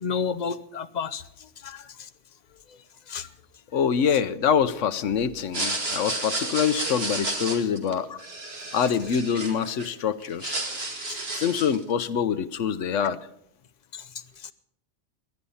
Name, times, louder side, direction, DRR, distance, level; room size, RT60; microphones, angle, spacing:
voice 1, 0.0-1.2 1.6-1.8 3.1-3.3 8.1-8.2, left 6 dB, 45° left, 11 dB, 0.7 m, -30 dB
voice 2, 3.7-8.1 8.7-10.6 11.3-13.2, left 7 dB, 85° left, 13 dB, 1.2 m, -25 dB
sound 1, 5.4-9.9 10.2-11.8, right 2 dB, 55° right, 2.5 m, -31 dB
19.0 x 11.5 x 5.6 m, 0.74 s
omnidirectional pair, 1.2 m